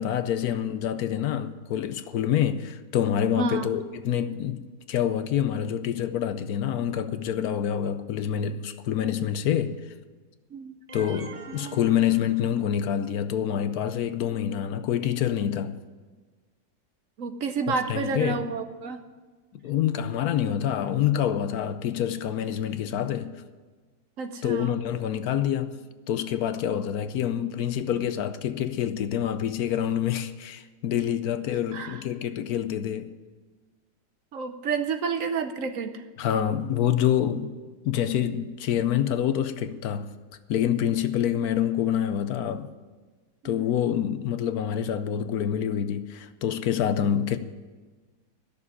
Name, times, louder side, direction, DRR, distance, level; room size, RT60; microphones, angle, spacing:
voice 1, 0.0-9.9 10.9-15.7 17.9-18.5 19.6-23.3 24.4-25.8 26.1-33.1 36.2-37.5 37.8-40.1 40.5-42.7 43.4-47.4, left 9 dB, 70° left, 1.1 m, -26 dB
voice 2, 3.4-3.7 10.5-11.1 11.5-11.8 17.2-19.0 24.2-24.8 31.7-32.0 34.3-36.0 43.4-43.7, right 5 dB, 60° right, 1.1 m, -30 dB
sound 1, 10.9-13.0, right 3 dB, 30° right, 0.7 m, -46 dB
13.5 x 6.9 x 9.7 m
omnidirectional pair, 1.7 m